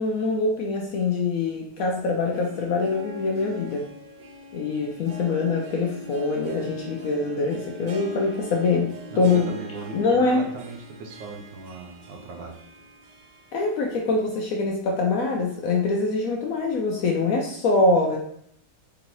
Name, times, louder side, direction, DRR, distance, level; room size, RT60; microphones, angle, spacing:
voice 1, 0.0-3.9 4.5-9.5 9.9-10.5 13.5-18.2, left 3 dB, 70° left, 1 dB, 0.8 m, -24 dB
Harp, 2.3-14.2 14.6-14.7 15.5-15.6, equal, 70° right, 1.1 m, -41 dB
voice 2, 9.1-12.6, right 3 dB, 90° right, 3 dB, 1.4 m, -38 dB
3.9 x 3.5 x 2.9 m, 0.69 s
omnidirectional pair, 1.9 m